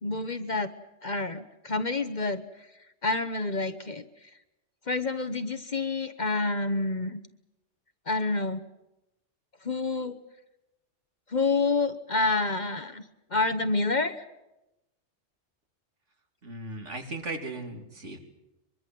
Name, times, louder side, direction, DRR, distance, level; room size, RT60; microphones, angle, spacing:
voice 1, 0.0-0.7 1.0-2.4 3.0-4.1 4.9-7.2 8.1-8.6 9.6-10.2 11.3-13.0 13.3-14.2, left 3 dB, 40° left, 10 dB, 1.1 m, -28 dB
voice 2, 16.4-18.2, right 2 dB, 70° right, 4 dB, 3.1 m, -37 dB
23.0 x 23.0 x 7.6 m, 0.93 s
omnidirectional pair, 1.3 m